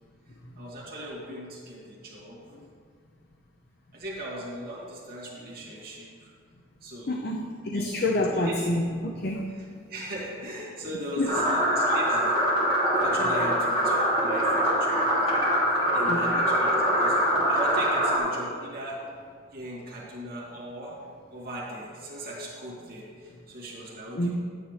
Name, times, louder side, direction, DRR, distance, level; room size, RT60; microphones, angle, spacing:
voice 1, 0.6-2.4 3.9-6.1 6.8-7.1 7.7-8.0 8.3-8.6 9.5-12.4 13.0-15.0 15.9-19.0 19.5-21.0 21.3-24.3, right 1 dB, 50° right, -6 dB, 2.3 m, -38 dB
voice 2, 7.1-9.4 11.2-11.3 13.1-13.3 16.0-16.4 24.1-24.3, left 1 dB, 55° left, 1 dB, 0.6 m, -28 dB
sound 1, 11.2-18.2, equal, 30° left, 2.9 m, -24 dB
11.5 x 9.3 x 3.3 m, 2.1 s
head